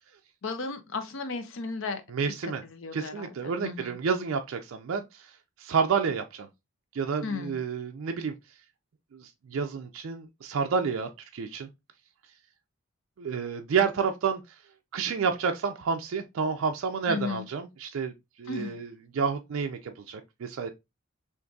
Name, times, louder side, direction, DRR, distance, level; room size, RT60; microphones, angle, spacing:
voice 1, 0.4-3.9 7.2-7.6 17.1-17.5 18.5-18.8, left 4 dB, 60° left, 0.5 m, -35 dB
voice 2, 2.1-2.6 2.9-5.3 5.6-6.5 6.9-8.3 9.1-11.7 13.2-14.4 14.9-18.1 18.4-18.9 19.1-20.7, right 5 dB, 60° right, 0.4 m, -29 dB
3.8 x 2.5 x 2.3 m
head